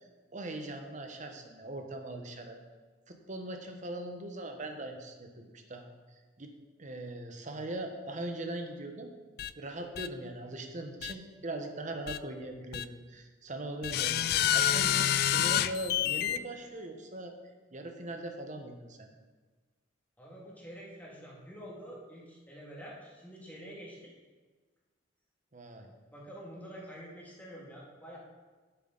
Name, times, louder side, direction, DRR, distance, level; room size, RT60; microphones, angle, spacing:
voice 1, 0.3-2.6 3.1-5.9 6.4-6.5 6.8-9.1 9.6-14.3 14.5-15.0 15.3-17.4 17.7-19.1 25.5-25.9, right 1 dB, 40° right, 5 dB, 1.0 m, -40 dB
sound 1, 9.4-9.5 10.0-10.1 11.0-11.1 12.1-12.2 12.7-12.8 13.8-16.4, left 11 dB, 55° left, 0.3 m, -28 dB
voice 2, 20.2-24.1 26.1-28.2, equal, 10° left, -5 dB, 2.2 m, -47 dB
9.6 x 8.2 x 4.0 m, 1.4 s
head